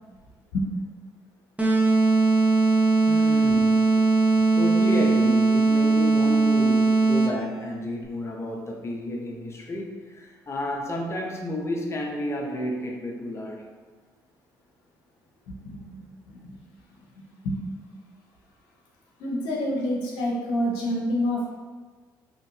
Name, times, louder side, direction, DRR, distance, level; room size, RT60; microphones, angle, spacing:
sound 1, 1.6-7.5, right 3 dB, 15° right, 0.7 m, -20 dB
voice 1, 3.1-4.0 4.5-13.7, left 1 dB, 30° left, 0 dB, 0.6 m, -31 dB
voice 2, 15.5-16.6 17.2-17.6 19.2-21.6, left 1 dB, 80° left, -3 dB, 0.6 m, -28 dB
2.7 x 2.4 x 3.1 m, 1.4 s
hypercardioid pair, 55°, 9 cm